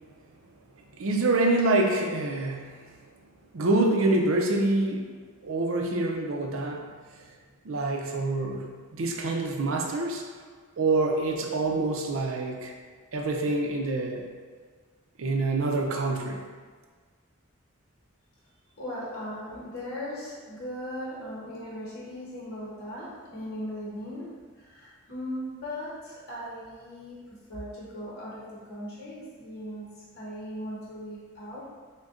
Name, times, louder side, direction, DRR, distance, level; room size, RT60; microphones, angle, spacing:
voice 1, 1.0-2.9 3.5-5.1 5.4-6.9 7.6-10.2 10.8-12.7 13.1-14.3 15.2-16.4, right 2 dB, 70° right, 1 dB, 0.5 m, -26 dB
voice 2, 18.8-31.6, equal, 50° left, -6 dB, 0.9 m, -38 dB
6.2 x 2.2 x 2.5 m, 1.5 s
head